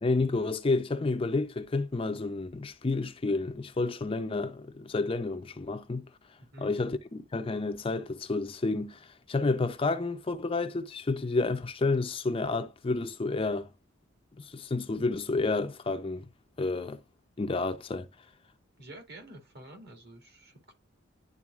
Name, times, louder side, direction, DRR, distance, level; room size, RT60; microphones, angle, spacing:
voice 1, 0.0-6.0 6.6-9.0 9.3-13.7 14.4-16.3 16.6-17.0 17.4-18.1, left 3 dB, 25° left, 0.4 m, -30 dB
voice 2, 18.8-20.7, right 1 dB, 55° right, 2.1 m, -49 dB
11.0 x 3.9 x 2.4 m
head